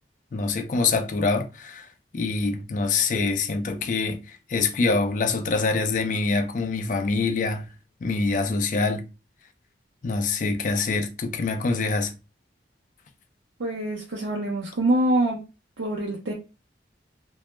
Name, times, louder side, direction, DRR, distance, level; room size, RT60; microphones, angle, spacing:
voice 1, 0.3-1.9 2.1-7.7 8.0-9.1 10.0-12.1, left 3 dB, 45° left, 0.4 m, -25 dB
voice 2, 13.6-15.4 15.8-16.3, right 1 dB, 85° right, 0.5 m, -25 dB
2.1 x 2.0 x 3.0 m
head